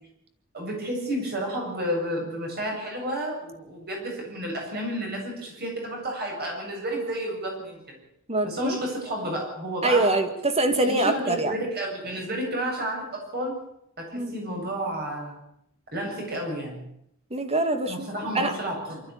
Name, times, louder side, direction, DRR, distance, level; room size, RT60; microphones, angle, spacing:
voice 1, 0.5-8.0 8.4-10.2 10.8-13.6 14.0-15.4 15.9-16.8 17.9-19.0, right 1 dB, 45° right, 0 dB, 8.0 m, -31 dB
voice 2, 8.3-8.8 9.8-11.6 14.1-14.3 17.3-18.1 18.3-18.5, right 2 dB, 30° right, 8 dB, 2.1 m, -24 dB
24.5 x 13.0 x 8.5 m, 0.74 s
head